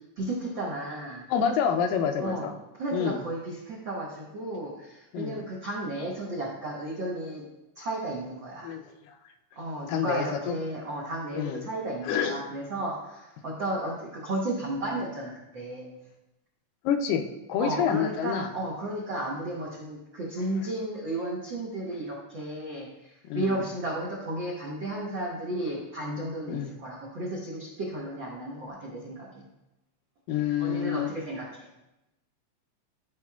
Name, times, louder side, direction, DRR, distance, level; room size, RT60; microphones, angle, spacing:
voice 1, 0.2-1.2 2.2-2.5 2.8-7.4 7.7-8.7 9.6-16.0 17.6-29.4 30.6-31.7, right 1 dB, 80° right, -4 dB, 1.0 m, -33 dB
voice 2, 1.3-2.5 2.9-3.2 5.1-5.4 8.6-9.2 9.9-10.6 11.4-11.7 12.0-12.4 16.8-17.2 17.5-18.5 20.6-20.7 23.2-23.6 26.5-26.7 30.3-31.1, left 8 dB, 85° left, 6 dB, 2.3 m, -28 dB
13.5 x 4.9 x 2.4 m, 0.94 s
omnidirectional pair, 3.9 m